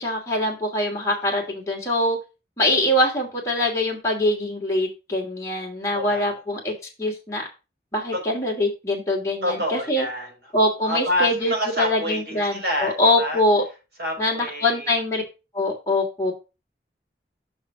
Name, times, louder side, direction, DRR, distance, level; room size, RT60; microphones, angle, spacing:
voice 1, 0.0-2.2 2.6-6.7 7.0-7.5 7.9-10.1 10.5-13.6 14.2-15.2 15.5-16.3, left 1 dB, 15° left, -2 dB, 2.9 m, -23 dB
voice 2, 5.9-6.4 8.1-8.2 9.4-10.5 10.8-13.4 14.0-14.9, equal, 65° right, 0 dB, 4.9 m, -28 dB
6.4 x 4.8 x 6.1 m, 0.29 s
head